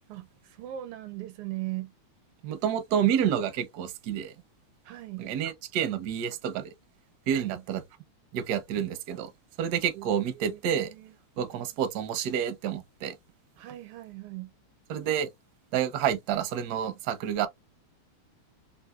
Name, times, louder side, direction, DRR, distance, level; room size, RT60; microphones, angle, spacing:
voice 1, 0.6-1.9 4.8-5.3 7.3-7.6 9.9-11.1 13.6-14.5, right 15 dB, 90° right, 1.7 m, -39 dB
voice 2, 2.4-4.3 5.2-6.7 7.3-7.8 8.3-9.3 9.6-10.9 11.4-13.1 14.9-15.3 15.7-17.5, right 9 dB, 70° right, 0.9 m, -29 dB
3.8 x 2.5 x 2.2 m
omnidirectional pair, 2.4 m